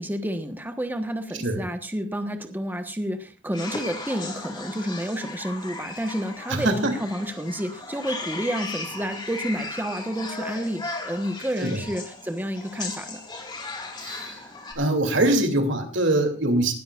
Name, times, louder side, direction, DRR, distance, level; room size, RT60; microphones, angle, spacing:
voice 1, 0.0-13.2, equal, 10° right, 5 dB, 1.3 m, -30 dB
sound 1, 3.5-14.7, left 3 dB, 25° left, 3.0 m, -37 dB
voice 2, 6.5-6.9 11.6-11.9 14.0-14.5 14.7-16.7, right 1 dB, 75° right, 4 dB, 2.9 m, -23 dB
20.0 x 13.0 x 2.5 m, 0.33 s
head